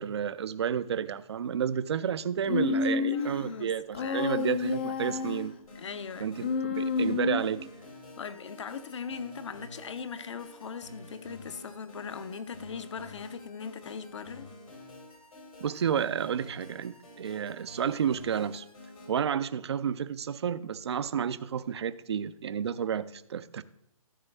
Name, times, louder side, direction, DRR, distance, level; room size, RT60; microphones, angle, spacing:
voice 1, 0.0-5.5 6.2-7.7 15.6-18.7 19.1-23.6, right 8 dB, 50° right, 0.4 m, -31 dB
Human voice, 2.5-3.4 3.9-5.5 6.4-7.6, left 5 dB, 20° left, 0.4 m, -29 dB
voice 2, 2.7-3.7 4.0-4.3 5.1-5.2 5.7-6.3 8.2-14.5, left 6 dB, 55° left, 0.7 m, -40 dB
sound 1, 4.0-19.1, left 2 dB, 85° left, 3.6 m, -49 dB
13.5 x 6.9 x 3.3 m
hypercardioid pair, 165°, 18 cm